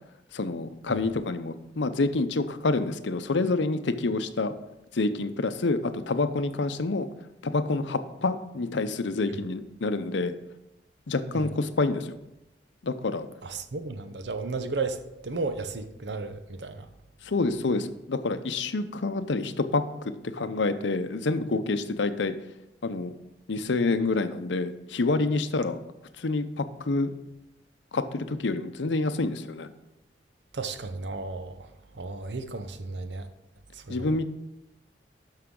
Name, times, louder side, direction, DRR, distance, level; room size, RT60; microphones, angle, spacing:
voice 1, 0.3-4.5 4.9-7.1 7.4-10.3 11.1-12.2 12.8-13.3 17.2-22.3 22.8-23.1 23.5-25.8 26.2-27.1 27.9-29.7 33.9-34.2, left 3 dB, 85° left, 0.7 m, -27 dB
voice 2, 13.4-16.9 30.5-31.7 32.0-33.3 33.7-34.1, right 3 dB, 70° right, 0.8 m, -34 dB
13.0 x 5.7 x 3.8 m
head